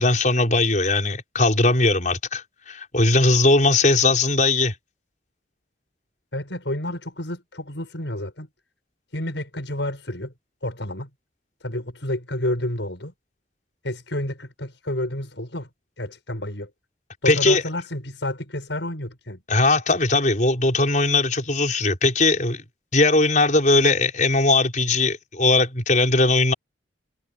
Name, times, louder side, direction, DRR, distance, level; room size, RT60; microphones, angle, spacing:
voice 1, 0.0-4.7 17.3-17.6 19.5-22.6 22.9-26.5, left 2 dB, 40° left, 5.8 m, -19 dB
voice 2, 6.3-8.5 9.1-10.3 10.6-11.1 11.6-13.1 13.8-15.7 16.0-16.7 17.2-19.4, left 1 dB, 70° left, 6.8 m, -30 dB
head